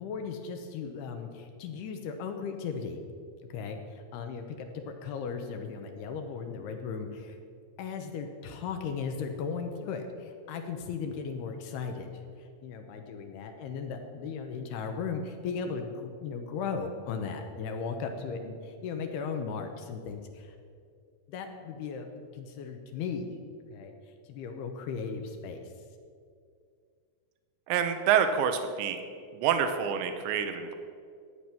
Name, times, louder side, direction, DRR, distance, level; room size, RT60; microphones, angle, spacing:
voice 1, 0.0-3.0 3.5-7.4 7.8-12.1 12.4-20.5 21.3-22.1 22.3-23.3 23.7-23.9 24.3-25.7, left 5 dB, 75° left, 5 dB, 2.7 m, -36 dB
voice 2, 27.7-29.0 29.3-30.7, right 8 dB, 90° right, 7 dB, 3.1 m, -27 dB
15.0 x 9.2 x 5.9 m, 2.3 s
omnidirectional pair, 5.2 m